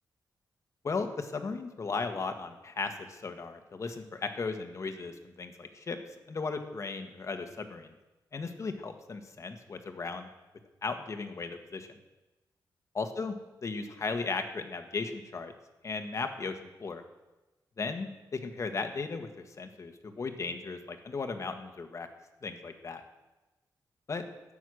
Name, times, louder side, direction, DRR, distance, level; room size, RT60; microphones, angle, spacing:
voice 1, 0.8-6.0 6.3-7.9 8.3-10.3 10.8-11.9 12.9-13.3 13.6-15.5 15.8-17.0 17.8-19.3 19.6-22.1 22.4-23.0 24.1-24.2, left 4 dB, 45° left, 7 dB, 1.5 m, -36 dB
12.5 x 9.1 x 6.4 m, 1.1 s
cardioid pair, 95°, 7 cm